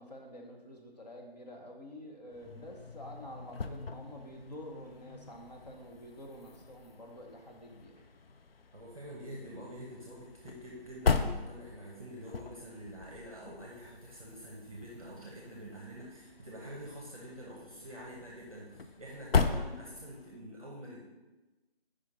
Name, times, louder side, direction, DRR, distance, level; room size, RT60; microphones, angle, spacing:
voice 1, 0.0-7.9, equal, 40° left, 0 dB, 1.0 m, -48 dB
sound 1, 2.3-20.4, left 5 dB, 65° left, 0.5 m, -38 dB
voice 2, 8.7-21.1, equal, 35° right, -2 dB, 0.8 m, -46 dB
5.0 x 4.4 x 4.9 m, 1.1 s
figure-of-eight pair, 170°, 31 cm